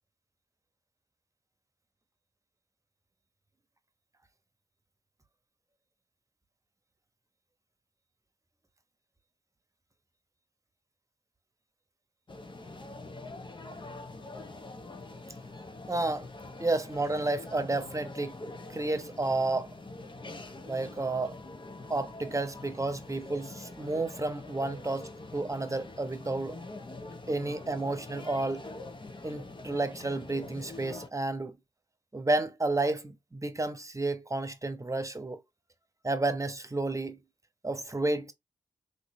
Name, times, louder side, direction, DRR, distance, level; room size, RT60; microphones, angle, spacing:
sound 1, 12.3-31.1, left 2 dB, 40° left, 1.2 m, -44 dB
voice 1, 15.9-16.3 16.6-18.4 18.7-19.7 20.6-21.4 21.9-26.6 27.3-28.7 29.2-31.6 32.1-35.4 36.0-37.2 37.6-38.3, right 2 dB, 25° right, 1.1 m, -31 dB
3.9 x 2.8 x 3.9 m
cardioid pair, 45°, 13 cm